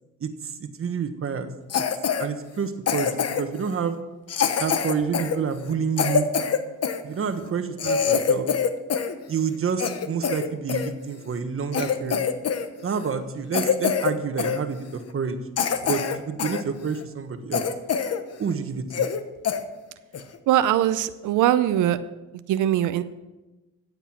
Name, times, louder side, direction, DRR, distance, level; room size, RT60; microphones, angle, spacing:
voice 1, 0.6-1.5 2.2-4.0 4.6-6.3 7.0-8.5 9.3-12.2 12.8-15.4 15.8-17.7 18.4-19.1, right 6 dB, 45° right, 8 dB, 1.3 m, -28 dB
Cough, 1.7-2.3 2.9-3.6 4.3-7.0 7.5-7.6 7.8-9.1 9.5-10.9 11.4-11.5 11.7-12.7 12.9-13.1 13.5-14.1 14.4-14.6 15.1-15.2 15.6-16.6 17.0-17.1 17.5-18.2 18.5-18.6 18.9-19.2 19.4-19.6 20.1-20.4, left 7 dB, 55° left, 1.1 m, -24 dB
voice 2, 20.5-22.0 22.5-23.0, right 12 dB, 80° right, 12 dB, 0.6 m, -21 dB
13.5 x 8.0 x 5.9 m, 1.1 s
cardioid pair, 90°, 30 cm